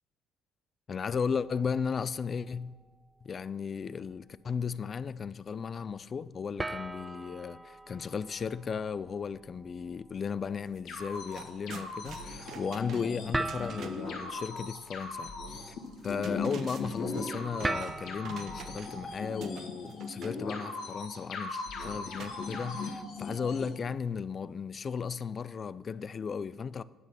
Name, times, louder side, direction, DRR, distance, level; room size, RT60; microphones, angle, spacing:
voice 1, 0.9-2.7 3.2-15.8 16.0-26.8, left 6 dB, 45° left, 0.3 m, -35 dB
sound 1, 1.3-2.9 3.2-3.6 4.2-4.3 6.6-19.6, right 2 dB, 20° right, 0.5 m, -42 dB
sound 2, 10.7-10.8 11.1-14.2 15.9-19.1 19.4-20.4 22.2-23.1, right 7 dB, 65° right, 0.7 m, -47 dB
sound 3, 10.9-23.7, left 3 dB, 70° left, 1.9 m, -39 dB
9.4 x 5.8 x 6.1 m
supercardioid pair, 70°, 0 cm